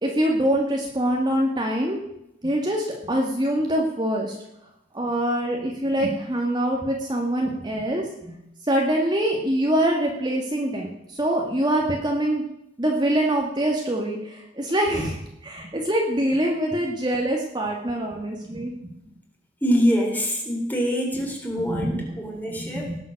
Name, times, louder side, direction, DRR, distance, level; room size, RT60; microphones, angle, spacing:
voice 1, 0.0-2.0 2.4-4.4 4.9-8.4 8.7-12.4 12.8-18.7 21.7-21.9 22.6-23.0, right 1 dB, 25° right, 0 dB, 1.9 m, -24 dB
voice 2, 19.6-23.0, equal, 10° left, 0 dB, 3.5 m, -24 dB
18.5 x 7.7 x 6.6 m, 0.82 s
head